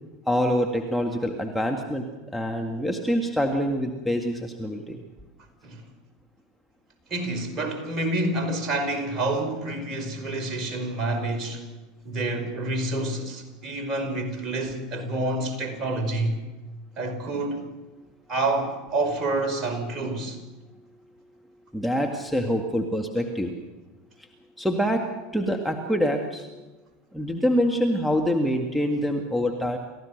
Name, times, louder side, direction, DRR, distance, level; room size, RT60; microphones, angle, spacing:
voice 1, 0.3-2.1 2.3-5.0 21.7-23.5 24.6-26.6 27.1-29.8, equal, ahead, 2.0 m, -25 dB
voice 2, 7.1-11.6 12.1-16.4 17.0-17.6 18.3-20.4, right 2 dB, 35° right, 5.2 m, -28 dB
29.0 x 15.0 x 6.6 m
hypercardioid pair, 85°, 0 cm